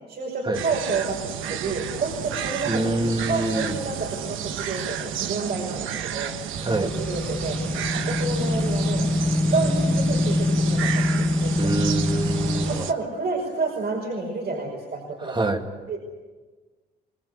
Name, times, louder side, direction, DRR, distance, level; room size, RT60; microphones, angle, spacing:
voice 1, 0.1-6.3 6.7-7.6 7.9-9.1 9.5-11.8 12.7-15.4 15.9-16.0, right 3 dB, 55° right, 0 dB, 5.2 m, -29 dB
sound 1, 0.5-12.9, right 9 dB, 85° right, 1.2 m, -32 dB
voice 2, 2.7-3.8 6.6-6.9 11.6-12.9 15.2-15.7, right 2 dB, 25° right, 5 dB, 2.4 m, -26 dB
sound 2, 6.5-12.8, left 1 dB, 5° left, 0.7 m, -24 dB
24.0 x 20.5 x 8.4 m, 1.4 s
cardioid pair, 90°, 20 cm